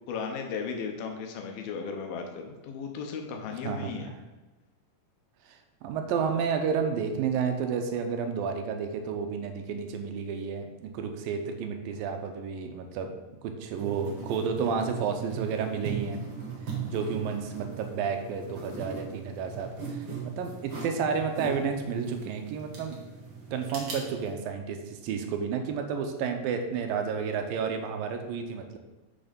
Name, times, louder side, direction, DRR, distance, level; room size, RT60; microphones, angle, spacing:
voice 1, 0.1-4.1, left 5 dB, 90° left, 3 dB, 2.9 m, -35 dB
voice 2, 3.6-4.1 5.5-13.1 13.4-16.2 16.9-23.0 23.5-28.8, right 6 dB, 80° right, 5 dB, 2.5 m, -31 dB
sound 1, 13.7-24.3, right 5 dB, 45° right, 1.6 m, -39 dB
6.7 x 6.5 x 5.2 m, 1.2 s
omnidirectional pair, 4.1 m